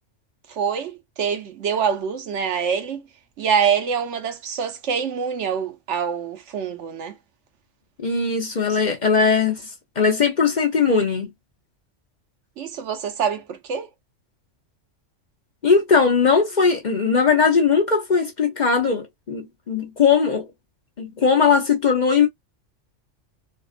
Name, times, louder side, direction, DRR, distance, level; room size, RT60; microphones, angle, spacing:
voice 1, 0.5-3.0 3.4-7.2 8.7-8.8 12.6-13.9, right 7 dB, 70° right, 1.0 m, -25 dB
voice 2, 8.0-9.6 10.0-11.3 15.6-20.5 21.0-22.3, left 5 dB, 45° left, 0.8 m, -19 dB
3.6 x 2.4 x 2.4 m
omnidirectional pair, 1.3 m